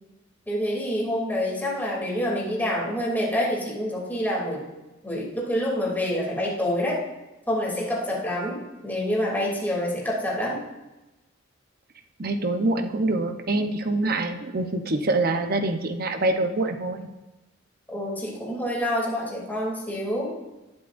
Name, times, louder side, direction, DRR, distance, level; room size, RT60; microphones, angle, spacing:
voice 1, 0.5-4.6 5.0-7.0 7.5-10.6 17.9-20.3, equal, 10° left, -4 dB, 2.9 m, -27 dB
voice 2, 12.2-17.1, right 2 dB, 50° right, 6 dB, 0.9 m, -25 dB
20.0 x 7.6 x 2.6 m, 1.1 s
head